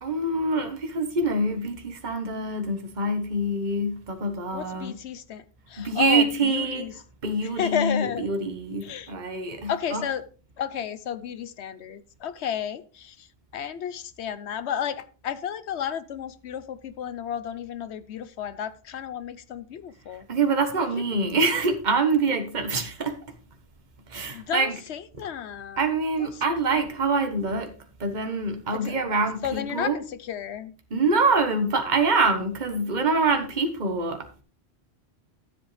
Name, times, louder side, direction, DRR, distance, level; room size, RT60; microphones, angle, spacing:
voice 1, 0.0-5.0 5.8-6.9 7.2-10.0 20.3-23.2 24.1-24.7 25.8-27.7 28.0-30.0 30.9-34.3, right 3 dB, 45° right, 1.4 m, -25 dB
voice 2, 4.5-6.9 7.6-8.3 8.8-9.1 9.7-10.3 10.6-13.3 13.5-20.3 20.8-21.2 24.3-25.8 26.2-26.3 28.7-29.0 29.4-30.7, left 9 dB, 85° left, 1.0 m, -32 dB
13.0 x 7.8 x 3.3 m
omnidirectional pair, 1.1 m